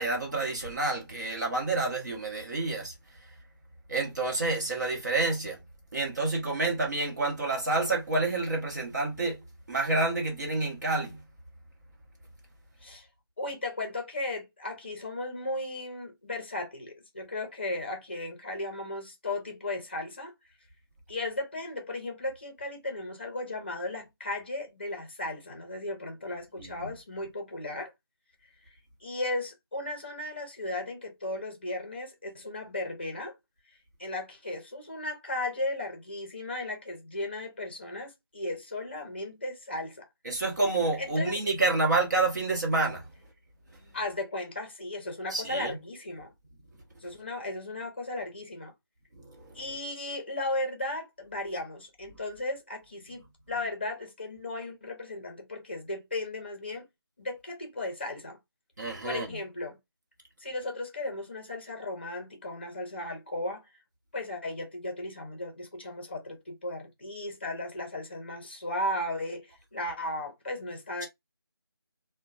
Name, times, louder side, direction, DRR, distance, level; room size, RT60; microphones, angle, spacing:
voice 1, 0.0-2.9 3.9-5.6 5.9-9.4 9.7-11.2 26.6-26.9 40.2-43.0 45.3-45.8 49.1-49.5 58.8-59.3, right 3 dB, 45° right, 1.0 m, -28 dB
voice 2, 13.4-20.3 21.1-27.9 29.0-33.3 34.0-40.1 41.0-41.4 43.9-46.3 47.0-48.7 49.5-56.9 57.2-58.4 59.0-59.8 60.4-63.6 64.1-71.1, left 2 dB, 25° left, 0.7 m, -35 dB
2.9 x 2.1 x 2.4 m
figure-of-eight pair, 170°, 13 cm